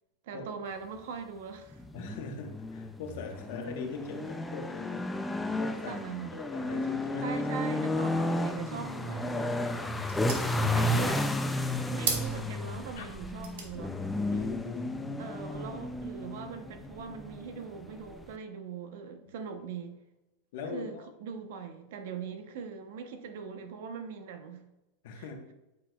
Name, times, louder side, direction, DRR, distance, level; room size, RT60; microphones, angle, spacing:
voice 1, 0.2-1.8 5.9-6.4 7.2-9.5 10.0-11.2 11.9-14.0 15.2-20.0 20.7-24.6 25.1-25.3, right 6 dB, 60° right, 0.8 m, -41 dB
sound 1, 1.7-18.4, left 1 dB, 5° left, 0.3 m, -33 dB
voice 2, 1.9-6.0 6.3-7.4 9.8-10.3 13.0-13.1 14.3-15.8 20.5-21.1 25.0-25.5, left 4 dB, 60° left, 1.2 m, -42 dB
sound 2, 11.9-15.9, right 5 dB, 75° right, 1.6 m, -41 dB
8.4 x 6.1 x 2.3 m
supercardioid pair, 165°, 0 cm